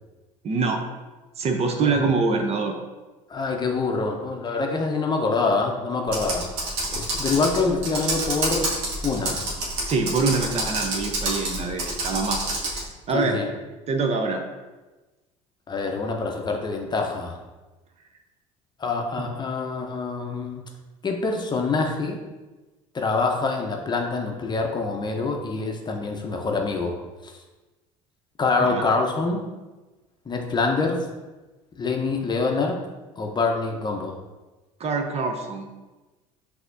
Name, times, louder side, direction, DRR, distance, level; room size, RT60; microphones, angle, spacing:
voice 1, 0.4-0.8 1.4-2.7 9.9-12.4 12.7-12.8 13.1-13.4 13.9-14.4 19.2-19.3 28.6-28.8 34.8-35.7, right 4 dB, 40° right, 4 dB, 0.6 m, -25 dB
voice 2, 3.3-6.5 6.9-8.7 9.0-9.4 13.1-13.5 15.7-17.4 18.8-20.6 21.0-22.2 22.9-26.9 27.2-27.3 28.4-29.4 30.3-31.0 31.8-32.8 33.2-34.2, left 4 dB, 25° left, 2 dB, 0.7 m, -25 dB
Computer keyboard, 6.1-12.9, right 2 dB, 80° right, 1.1 m, -28 dB
5.8 x 2.8 x 2.6 m, 1.2 s
hypercardioid pair, 75°, 17 cm